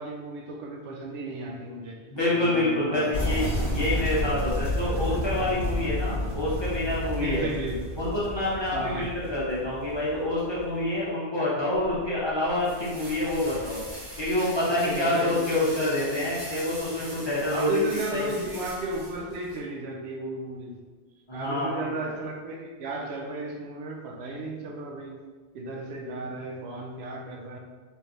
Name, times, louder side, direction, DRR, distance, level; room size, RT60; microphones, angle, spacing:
voice 1, 0.0-2.0 2.3-3.3 4.0-4.1 4.8-5.0 7.2-7.7 8.7-9.1 14.8-15.5 17.5-20.8 21.3-25.2 25.5-27.6, right 2 dB, 80° right, 1 dB, 0.8 m, -34 dB
voice 2, 2.1-7.4 8.0-13.8 14.2-17.7 18.1-18.2 21.3-21.9, left 1 dB, 25° left, -9 dB, 0.9 m, -27 dB
sound 1, 3.1-10.8, left 1 dB, 60° right, 1.5 m, -30 dB
sound 2, 11.7-19.6, equal, 30° right, 1.3 m, -42 dB
3.3 x 3.1 x 2.6 m, 1.3 s
omnidirectional pair, 1.1 m